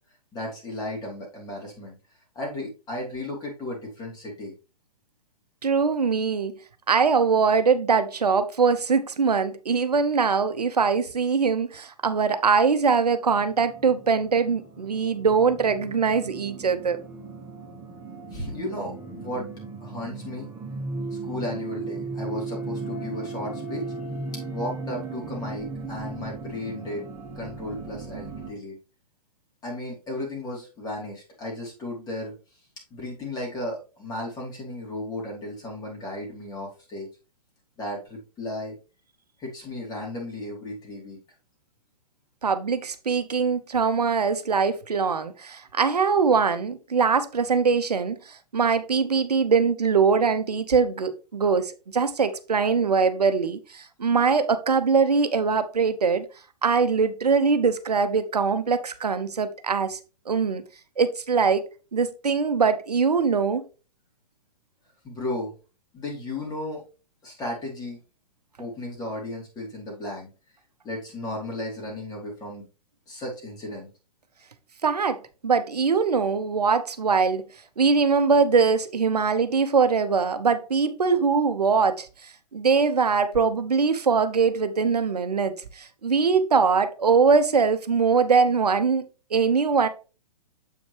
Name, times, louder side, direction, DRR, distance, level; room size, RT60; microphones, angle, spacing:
voice 1, 0.3-2.0 2.3-4.5 18.3-19.5 19.8-20.5 21.2-23.8 24.5-27.0 27.3-28.8 29.6-32.3 32.9-37.1 37.8-38.7 39.4-41.2 65.0-65.5 65.9-66.8 67.2-68.0 68.6-70.3 70.8-72.6 73.1-73.9, left 1 dB, 20° left, 2.8 m, -34 dB
voice 2, 5.6-6.5 6.9-17.0 42.4-56.3 56.6-60.0 60.3-60.6 61.0-61.6 61.9-63.6 74.8-75.2 75.4-77.4 77.8-89.0 89.3-89.9, right 5 dB, 75° right, 0.8 m, -22 dB
sound 1, 13.3-28.5, right 3 dB, 15° right, 1.9 m, -36 dB
7.6 x 5.1 x 3.2 m
figure-of-eight pair, 115°, 20 cm